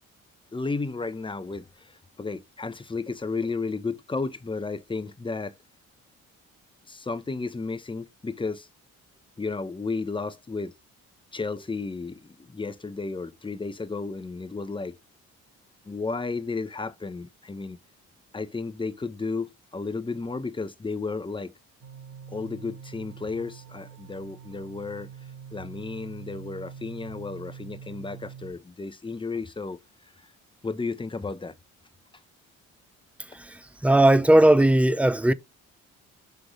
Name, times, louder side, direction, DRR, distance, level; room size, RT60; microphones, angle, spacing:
voice 1, 0.5-5.5 6.9-8.7 9.4-10.7 11.3-14.9 15.9-17.8 18.3-21.5 22.3-25.1 25.5-29.8 30.6-31.5, left 4 dB, 15° left, 0.8 m, -33 dB
sound 1, 21.8-28.5, right 7 dB, 75° right, 2.0 m, -44 dB
voice 2, 33.8-35.3, right 1 dB, 5° right, 0.5 m, -17 dB
6.0 x 3.5 x 4.7 m
cardioid pair, 90°, 30 cm